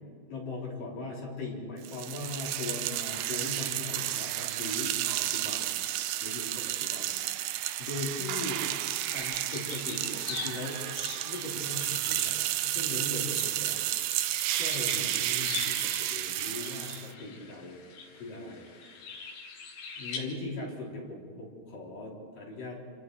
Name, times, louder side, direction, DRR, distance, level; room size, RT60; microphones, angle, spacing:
voice 1, 0.3-5.8 6.2-7.5 7.8-8.7 9.1-10.8 11.3-17.8 18.1-19.3 20.0-22.8, left 2 dB, 60° left, -3 dB, 5.3 m, -40 dB
sound 1, 1.8-17.1, right 14 dB, 75° right, 2.1 m, -32 dB
sound 2, 9.2-20.2, left 5 dB, 85° left, 4.5 m, -43 dB
28.0 x 26.5 x 4.7 m, 2.1 s
omnidirectional pair, 4.5 m